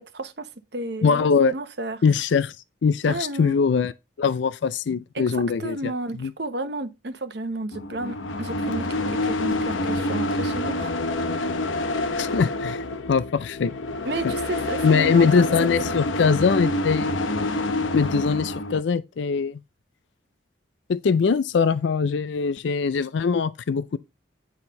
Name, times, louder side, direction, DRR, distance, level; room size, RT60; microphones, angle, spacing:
voice 1, 0.0-2.0 3.0-3.6 5.1-10.9 14.1-15.9, right 2 dB, 60° right, 0.9 m, -32 dB
voice 2, 1.0-1.5 2.0-2.6 2.8-3.9 4.2-5.9 6.2-6.3 12.2-13.7 14.8-17.1 17.9-19.6 20.9-24.0, left 5 dB, 70° left, 0.4 m, -22 dB
sound 1, 7.7-18.8, left 2 dB, 90° left, 0.9 m, -27 dB
9.6 x 4.4 x 5.4 m
head